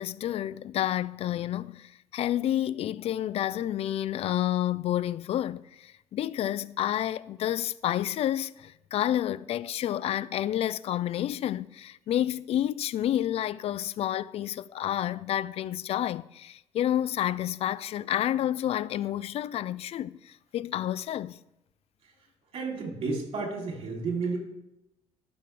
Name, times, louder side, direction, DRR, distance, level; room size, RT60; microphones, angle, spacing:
voice 1, 0.0-21.4, left 12 dB, 60° left, 0.4 m, -30 dB
voice 2, 22.5-24.4, right 4 dB, 55° right, 3.2 m, -31 dB
12.5 x 6.2 x 3.4 m
cardioid pair, 95°, 12 cm